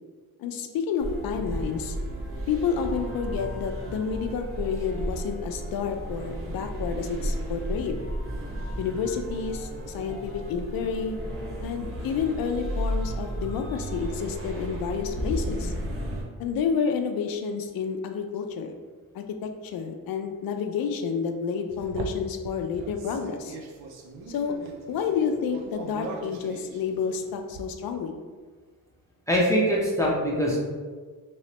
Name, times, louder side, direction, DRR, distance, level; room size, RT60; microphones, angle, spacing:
voice 1, 0.4-2.0 2.5-8.0 8.8-11.2 11.6-15.7 16.4-18.7 19.1-23.6 24.3-24.5 24.9-28.2, left 6 dB, 75° left, 5 dB, 0.5 m, -30 dB
minsk klavierimtheater, 1.0-16.2, equal, 40° right, 0.7 m, -33 dB
sound 1, 21.7-27.6, right 3 dB, 85° right, 0.6 m, -40 dB
voice 2, 29.3-30.6, equal, 10° left, -5 dB, 0.6 m, -23 dB
3.1 x 3.0 x 2.9 m, 1.5 s
cardioid pair, 120°, 36 cm